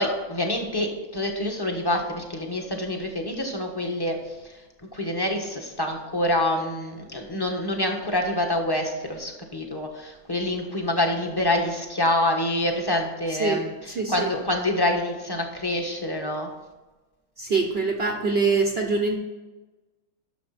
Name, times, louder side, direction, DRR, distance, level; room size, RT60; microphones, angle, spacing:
voice 1, 0.0-4.5 4.9-16.5, left 1 dB, 15° left, 2 dB, 1.4 m, -26 dB
voice 2, 13.3-13.6 14.0-14.3 17.4-19.1, right 4 dB, 45° right, 2 dB, 1.0 m, -24 dB
11.0 x 6.8 x 4.3 m, 1.2 s
omnidirectional pair, 1.6 m